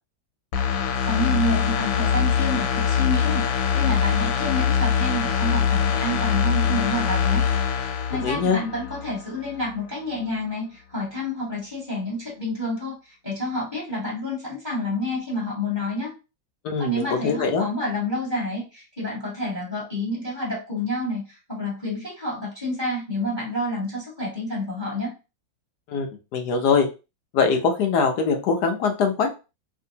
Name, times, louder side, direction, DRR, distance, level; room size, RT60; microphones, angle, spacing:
sound 1, 0.5-9.2 9.5-9.7, left 7 dB, 90° left, 1.4 m, -23 dB
voice 1, 1.0-7.4 7.8-16.1 16.8-25.1, left 1 dB, 15° left, -5 dB, 1.3 m, -29 dB
voice 2, 8.2-8.6 16.6-17.7 25.9-26.1 26.3-26.9 27.3-29.3, left 5 dB, 70° left, 4 dB, 1.1 m, -22 dB
3.5 x 2.6 x 2.7 m, 0.29 s
omnidirectional pair, 2.1 m